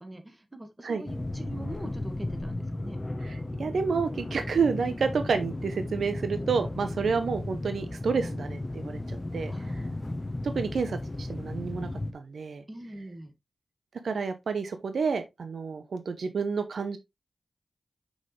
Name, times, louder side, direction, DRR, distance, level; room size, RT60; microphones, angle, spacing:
voice 1, 0.0-3.0 9.5-10.5 12.7-13.3, right 1 dB, 25° right, 1.7 m, -44 dB
sound 1, 1.1-12.1, left 2 dB, 25° left, 1.1 m, -35 dB
voice 2, 3.2-9.8 10.4-12.6 14.0-17.0, right 5 dB, 85° right, 0.8 m, -30 dB
6.4 x 5.1 x 3.2 m
cardioid pair, 60°, 0 cm